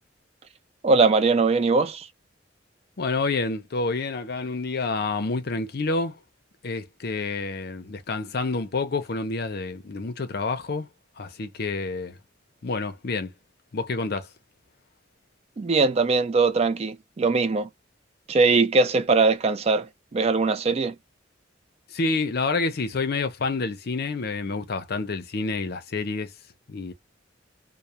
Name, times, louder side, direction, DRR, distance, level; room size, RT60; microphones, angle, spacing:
voice 1, 0.8-2.1 15.6-17.7 18.3-21.0, right 4 dB, 35° right, 0.3 m, -21 dB
voice 2, 3.0-6.2 6.6-10.9 11.2-12.2 12.6-13.3 13.7-14.3 21.9-26.3 26.7-26.9, left 3 dB, 55° left, 0.6 m, -28 dB
2.3 x 2.1 x 2.7 m
head